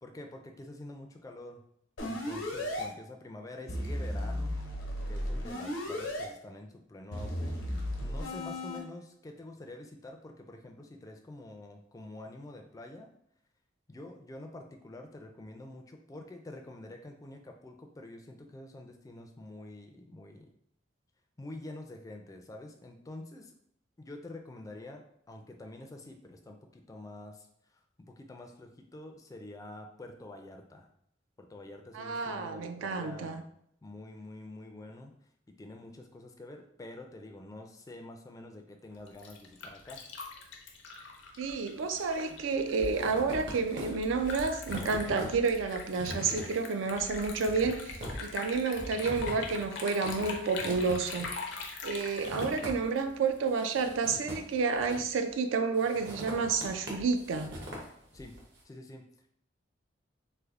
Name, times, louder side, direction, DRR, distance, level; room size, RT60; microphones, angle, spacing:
voice 1, 0.0-1.6 2.0-4.6 5.1-7.6 8.0-13.1 13.9-20.5 21.4-23.5 24.0-27.5 27.7-30.9 31.4-33.5 33.8-35.1 35.6-40.1 58.1-58.3 58.6-59.0, left 2 dB, 20° left, 3 dB, 0.3 m, -47 dB
sound 1, 2.0-2.8 3.7-6.2 7.1-8.8, left 1 dB, 85° left, 1.0 m, -35 dB
voice 2, 31.9-33.4 41.4-51.3 51.8-57.5, right 4 dB, 85° right, 7 dB, 0.4 m, -30 dB
Liquid, 38.9-53.5, left 4 dB, 65° left, 0.5 m, -43 dB
sound 2, 41.5-42.1 42.3-53.1 53.5-55.3 55.8-58.4, equal, 65° right, 0.9 m, -43 dB
3.3 x 2.0 x 3.5 m, 0.72 s
head